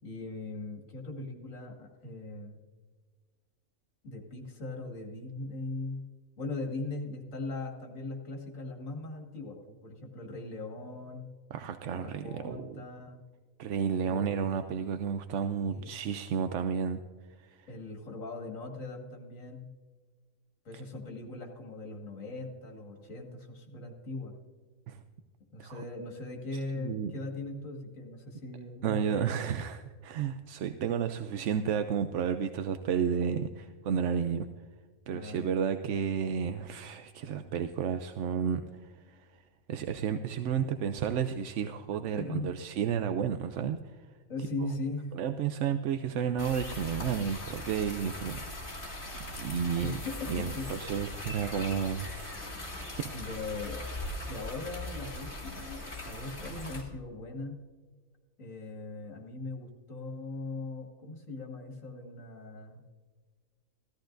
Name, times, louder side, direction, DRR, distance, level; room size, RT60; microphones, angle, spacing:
voice 1, 0.0-2.6 4.0-6.0 6.4-11.3 11.9-13.2 14.0-14.5 15.7-15.9 17.7-19.7 20.6-24.4 25.5-29.3 35.1-35.6 42.2-42.5 44.3-45.1 49.8-50.7 53.1-53.8 54.3-57.6 58.4-62.8, left 2 dB, 65° left, 1 dB, 2.3 m, -40 dB
voice 2, 11.5-12.8 13.6-17.0 17.4-17.7 24.9-25.0 25.6-25.8 26.8-27.1 28.8-34.5 35.1-39.3 39.7-44.1 45.1-48.7 49.4-50.0 50.3-52.4 52.8-53.4, right 7 dB, 65° right, 8 dB, 0.8 m, -32 dB
sound 1, 46.4-56.8, left 1 dB, 35° left, 2.7 m, -40 dB
16.0 x 13.5 x 2.6 m, 1.5 s
omnidirectional pair, 1.5 m